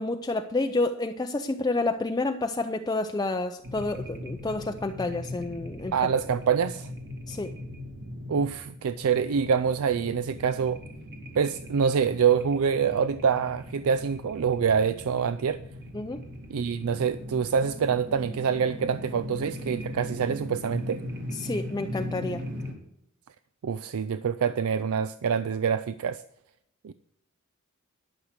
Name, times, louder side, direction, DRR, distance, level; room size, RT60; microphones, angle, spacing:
voice 1, 0.0-5.9 7.3-7.5 15.9-16.2 21.3-22.4, left 2 dB, 20° left, 0.5 m, -29 dB
sound 1, 3.6-22.7, left 1 dB, 55° right, 2.5 m, -39 dB
voice 2, 5.9-6.9 8.3-10.8 11.4-15.6 16.5-21.0 23.6-26.2 26.8-26.9, right 6 dB, 75° right, 0.4 m, -26 dB
12.0 x 6.4 x 6.6 m
head